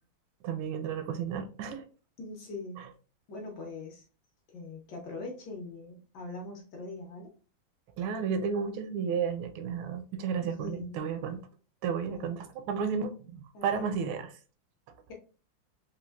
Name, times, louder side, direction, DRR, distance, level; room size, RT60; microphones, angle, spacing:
voice 1, 0.4-1.8 2.8-2.9 8.0-11.4 11.8-14.3, right 6 dB, 80° right, 1.4 m, -32 dB
voice 2, 2.2-2.9 3.3-4.0 4.5-7.3 10.4-11.1 12.1-12.3 13.5-13.8, left 2 dB, 65° left, 1.1 m, -42 dB
4.4 x 2.3 x 2.2 m
omnidirectional pair, 2.3 m